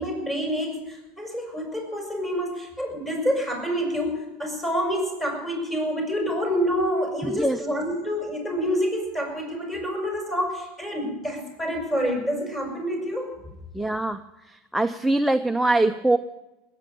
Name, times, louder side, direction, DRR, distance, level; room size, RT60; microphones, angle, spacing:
voice 1, 0.0-13.3, equal, 15° left, 2 dB, 6.5 m, -27 dB
voice 2, 7.2-7.6 13.7-14.2 14.7-16.2, right 2 dB, ahead, 7 dB, 0.5 m, -22 dB
20.0 x 9.2 x 6.9 m, 0.96 s
supercardioid pair, 115°, 0 cm